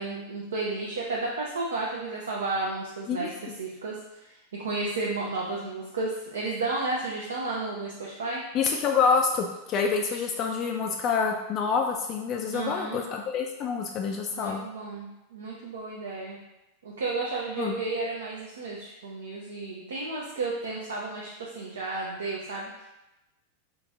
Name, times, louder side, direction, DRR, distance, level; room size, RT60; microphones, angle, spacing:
voice 1, 0.0-8.4 12.5-13.0 14.3-16.4 16.8-22.9, right 3 dB, 65° right, -3 dB, 0.5 m, -32 dB
voice 2, 8.5-14.6 17.6-17.8, left 5 dB, 35° left, 2 dB, 0.3 m, -27 dB
3.9 x 2.5 x 3.5 m, 0.95 s
figure-of-eight pair, 90°, 0 cm